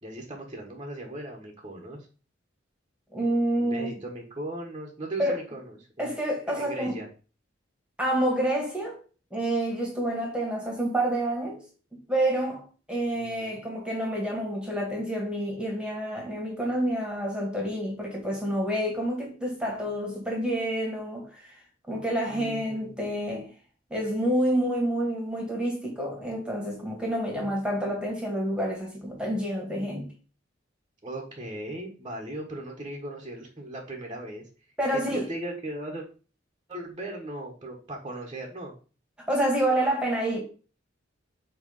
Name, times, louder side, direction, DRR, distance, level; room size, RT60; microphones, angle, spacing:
voice 1, 0.0-2.1 3.6-6.2 6.5-7.1 13.1-13.6 22.3-22.9 31.0-34.5 34.9-36.0 36.7-38.7, right 1 dB, 25° right, 1.5 m, -38 dB
voice 2, 3.1-3.9 5.2-5.4 6.0-6.9 8.0-9.0 9.3-11.6 11.9-21.5 21.9-23.5 23.9-30.1 34.8-35.2 39.3-40.4, right 1 dB, 5° right, 2.3 m, -28 dB
8.0 x 3.3 x 5.6 m
head